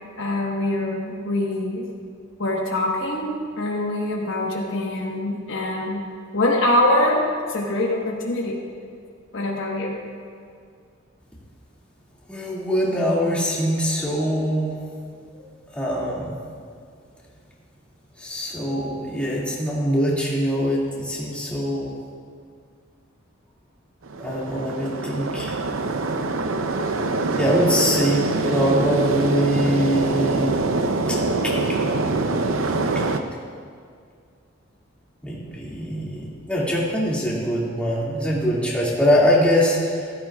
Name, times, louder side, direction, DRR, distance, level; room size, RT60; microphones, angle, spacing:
voice 1, 0.2-1.9 2.4-6.0 6.3-8.6 9.3-10.0, left 1 dB, 65° left, -1 dB, 1.3 m, -24 dB
voice 2, 12.3-14.8 15.3-15.4 15.7-16.4 18.2-22.0 24.2-25.6 27.4-30.5 31.1-31.2 31.4-31.6 32.9-33.0 35.2-40.1, equal, 5° left, -6 dB, 2.2 m, -23 dB
sound 1, 24.0-33.2, right 3 dB, 75° right, 0.6 m, -24 dB
15.0 x 13.0 x 2.4 m, 2.2 s
head